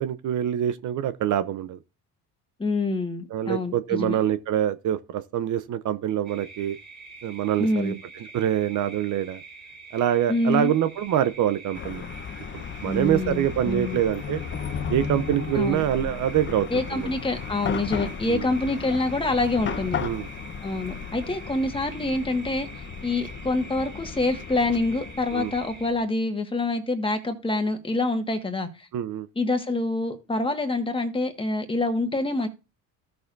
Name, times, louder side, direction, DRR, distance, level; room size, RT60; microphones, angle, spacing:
voice 1, 0.0-1.8 3.3-6.8 7.2-7.9 8.3-9.4 9.9-12.0 12.5-14.4 14.9-17.1 18.3-18.4 20.0-20.3 25.3-25.5 28.9-29.3, right 11 dB, 55° right, 0.7 m, -25 dB
voice 2, 2.6-4.2 7.6-8.0 10.3-10.7 12.9-14.0 15.5-15.8 16.7-20.0 20.6-28.9 29.3-32.5, left 2 dB, 15° left, 1.6 m, -26 dB
sound 1, 6.2-25.9, right 3 dB, 25° right, 2.5 m, -45 dB
Chatter / Car passing by / Traffic noise roadway noise, 11.7-26.0, left 6 dB, 35° left, 0.8 m, -35 dB
15.0 x 6.5 x 2.6 m
cardioid pair, 125°, 36 cm